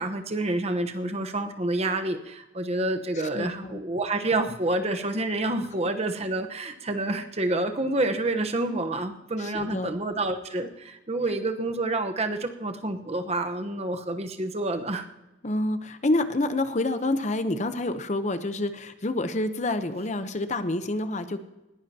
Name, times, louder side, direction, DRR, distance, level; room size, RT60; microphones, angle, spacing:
voice 1, 0.0-15.1, right 2 dB, 35° right, 7 dB, 1.0 m, -28 dB
voice 2, 3.3-3.8 9.4-9.9 15.4-21.4, left 2 dB, 40° left, 10 dB, 0.8 m, -28 dB
20.5 x 15.5 x 2.9 m, 1.0 s
head